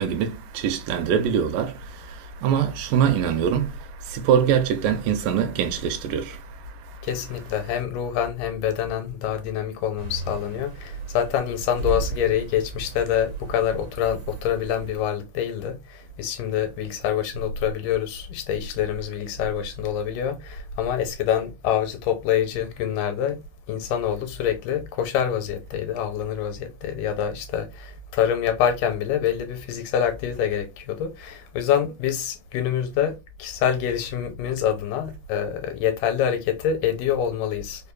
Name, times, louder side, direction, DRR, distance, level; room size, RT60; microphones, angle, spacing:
voice 1, 0.0-7.0, right 8 dB, 85° right, 2.2 m, -24 dB
voice 2, 7.0-23.4 23.7-37.9, left 9 dB, 85° left, 2.2 m, -26 dB
sound 1, 10.0-15.0, right 3 dB, 65° right, 1.4 m, -35 dB
5.0 x 2.2 x 2.3 m
omnidirectional pair, 3.7 m